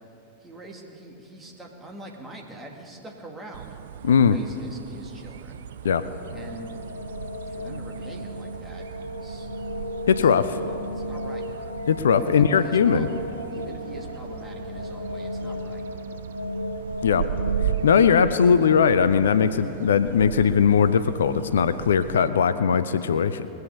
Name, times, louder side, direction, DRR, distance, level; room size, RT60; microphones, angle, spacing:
voice 1, 0.4-3.8 4.1-5.6 6.3-6.7 7.5-8.8 9.1-9.5 10.2-10.3 10.7-11.5 12.2-13.2 13.5-15.9, right 2 dB, 15° right, 0 dB, 2.0 m, -44 dB
sound 1, 3.5-22.3, right 10 dB, 65° right, 0.3 m, -37 dB
voice 2, 4.0-4.4 5.8-6.1 10.1-10.6 11.9-13.1 17.0-17.3 17.8-23.5, left 7 dB, 65° left, 13 dB, 0.4 m, -19 dB
sound 2, 5.8-20.7, left 1 dB, 85° left, 0.8 m, -35 dB
20.5 x 8.0 x 6.7 m, 2.9 s
figure-of-eight pair, 90°, 0 cm